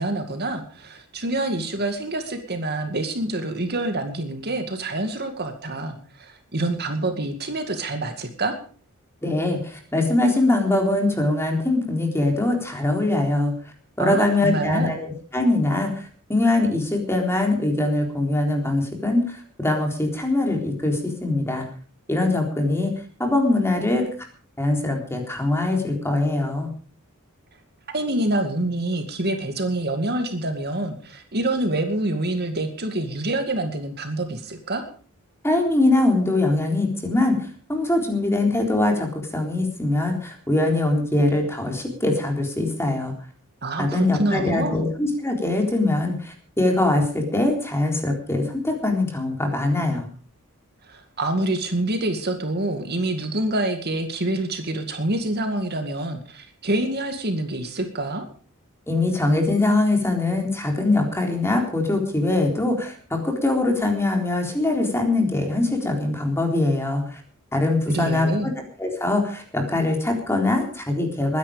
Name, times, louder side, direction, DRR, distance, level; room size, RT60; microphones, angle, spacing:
voice 1, 0.0-8.6 14.0-14.9 27.9-34.8 43.6-44.8 50.9-58.3 67.9-68.5, right 1 dB, 50° right, 6 dB, 2.2 m, -26 dB
voice 2, 9.2-13.5 14.0-21.7 22.1-22.9 23.2-24.0 24.6-26.7 35.4-37.4 37.7-43.1 43.8-50.1 58.9-67.2 67.5-68.5 68.8-71.4, left 2 dB, 10° left, 2 dB, 3.8 m, -22 dB
21.5 x 10.5 x 5.1 m, 0.43 s
head